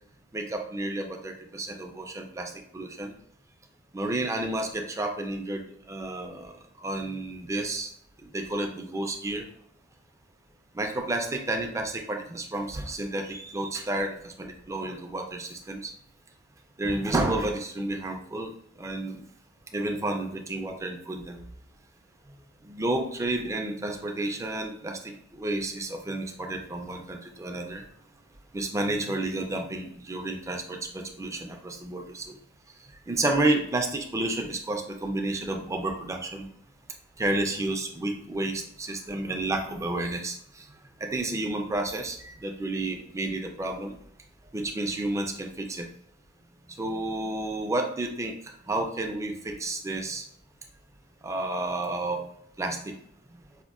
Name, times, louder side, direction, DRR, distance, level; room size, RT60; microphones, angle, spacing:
voice 1, 0.3-3.1 3.9-6.5 6.8-7.9 8.3-9.5 10.7-15.9 16.8-19.2 19.7-21.4 22.6-27.8 28.5-32.4 33.1-36.5 37.2-40.7 41.0-44.0 44.5-45.9 46.8-48.4 48.7-50.2 51.2-52.2 52.6-52.9, right 2 dB, 15° right, 3 dB, 0.4 m, -31 dB
5.1 x 2.1 x 2.3 m, 0.66 s
head